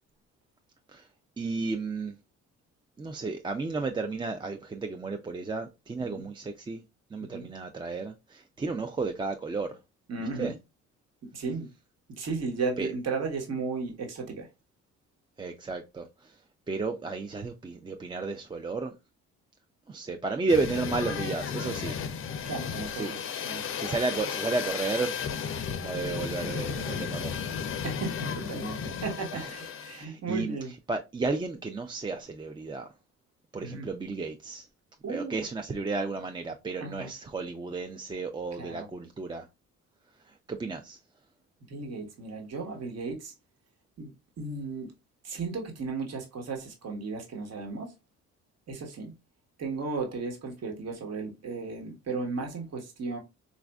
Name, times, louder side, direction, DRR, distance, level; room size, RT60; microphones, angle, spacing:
voice 1, 1.4-2.1 3.0-6.8 7.1-9.8 10.2-10.5 12.8-12.9 15.4-16.4 16.7-19.0 19.9-22.0 22.9-23.1 23.8-25.1 25.8-27.4 29.3-29.5 29.9-30.6 30.9-32.9 33.5-34.7 35.1-39.5 40.3-41.0, right 3 dB, 15° right, 0.3 m, -33 dB
voice 2, 10.1-10.5 11.3-11.7 12.2-14.5 22.4-23.6 27.8-30.7 33.6-33.9 35.0-35.4 36.8-37.1 38.6-38.9 41.7-43.3 44.0-44.1 44.4-44.9 45.2-47.9 48.7-49.1 49.6-53.2, right 4 dB, 55° right, 1.2 m, -35 dB
sound 1, 20.5-30.0, left 7 dB, 45° left, 0.5 m, -34 dB
4.1 x 2.4 x 2.3 m
cardioid pair, 90°, 30 cm